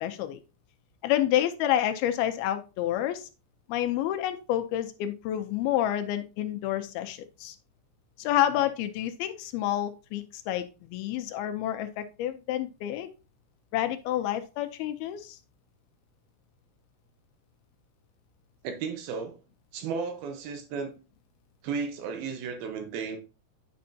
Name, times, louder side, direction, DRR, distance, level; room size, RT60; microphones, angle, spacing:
voice 1, 0.0-0.4 1.0-3.3 3.7-7.6 8.2-10.7 10.9-13.1 13.7-15.4, left 12 dB, 80° left, 9 dB, 2.5 m, -29 dB
voice 2, 18.6-19.4 19.7-20.9 21.6-23.2, right 5 dB, 75° right, 6 dB, 2.9 m, -34 dB
9.4 x 5.3 x 2.7 m, 0.30 s
omnidirectional pair, 4.5 m